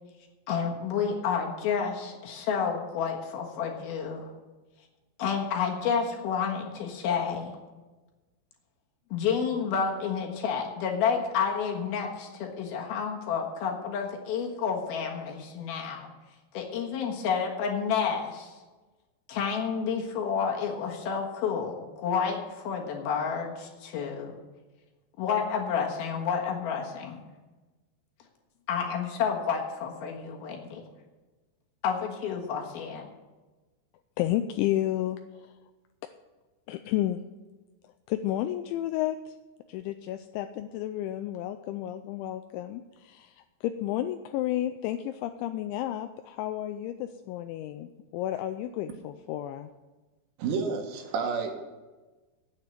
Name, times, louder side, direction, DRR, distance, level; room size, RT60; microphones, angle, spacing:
voice 1, 0.5-4.3 5.2-7.6 9.1-16.1 16.5-18.6 19.3-24.4 25.2-27.2 28.7-30.8 31.8-33.1, left 6 dB, 65° left, 1 dB, 2.9 m, -30 dB
voice 2, 34.2-35.5 36.7-37.2 38.1-39.3 39.7-43.4 43.6-49.7, left 13 dB, 85° left, 8 dB, 2.8 m, -31 dB
voice 3, 50.4-51.5, right 5 dB, 70° right, 4 dB, 3.4 m, -30 dB
9.7 x 8.6 x 8.9 m, 1.2 s
omnidirectional pair, 5.5 m